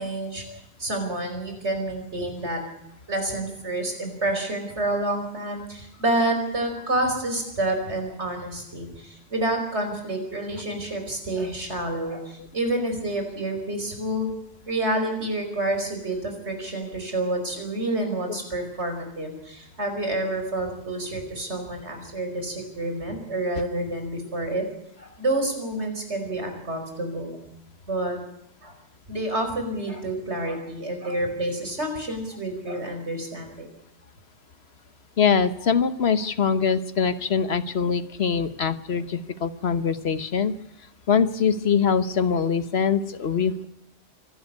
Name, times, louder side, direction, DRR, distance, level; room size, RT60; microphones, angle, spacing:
voice 1, 0.0-0.4 0.8-2.6 3.1-14.3 14.7-24.6 25.0-27.4 27.9-28.2 28.6-28.7 29.1-33.7, right 1 dB, 85° right, 5 dB, 5.3 m, -28 dB
voice 2, 35.2-40.5 41.1-43.6, left 6 dB, 70° left, 13 dB, 1.4 m, -23 dB
24.5 x 13.0 x 9.7 m, 0.78 s
omnidirectional pair, 1.1 m